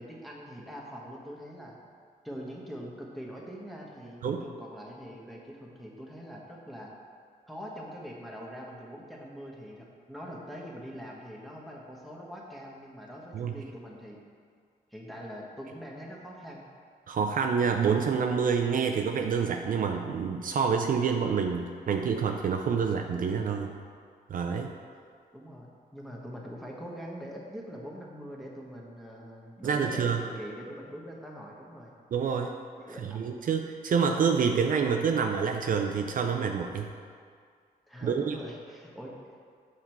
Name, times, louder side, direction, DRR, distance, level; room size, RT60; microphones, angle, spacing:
voice 1, 0.0-1.7 2.2-6.9 7.5-14.2 14.9-16.7 25.3-25.7 25.9-31.9 32.8-33.2 37.9-39.1, equal, ahead, -3 dB, 1.1 m, -43 dB
voice 2, 17.1-23.7 24.3-24.7 29.6-30.2 32.1-32.5 33.0-36.9 38.0-38.4, right 6 dB, 55° right, 3 dB, 0.4 m, -27 dB
5.9 x 4.3 x 4.5 m, 2.1 s
cardioid pair, 80°, 17 cm